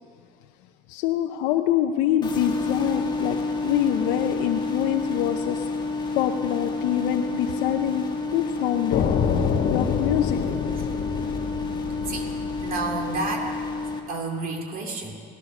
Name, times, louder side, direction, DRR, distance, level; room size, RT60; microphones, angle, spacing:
voice 1, 0.9-3.4 3.6-5.7 6.1-8.0 8.3-9.0 9.7-10.4, left 11 dB, 80° left, 4 dB, 0.7 m, -25 dB
sound 1, 2.2-14.0, left 3 dB, 25° left, 1.5 m, -30 dB
sound 2, 8.9-13.7, left 6 dB, 55° left, 1.2 m, -27 dB
voice 2, 12.6-13.5 14.1-15.2, right 3 dB, 50° right, 2 dB, 2.5 m, -30 dB
17.5 x 12.0 x 6.5 m, 2.3 s
cardioid pair, 110°, 19 cm